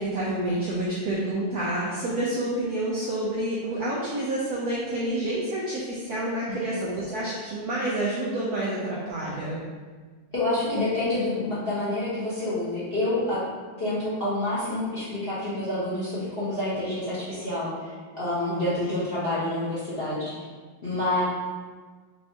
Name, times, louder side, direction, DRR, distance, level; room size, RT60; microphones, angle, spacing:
voice 1, 0.0-9.6 18.5-18.7, right 1 dB, 70° right, -6 dB, 0.9 m, -28 dB
voice 2, 10.3-13.4 13.8-20.3 20.8-21.2, left 2 dB, 35° left, -10 dB, 1.0 m, -28 dB
4.4 x 3.1 x 2.8 m, 1.4 s
omnidirectional pair, 2.3 m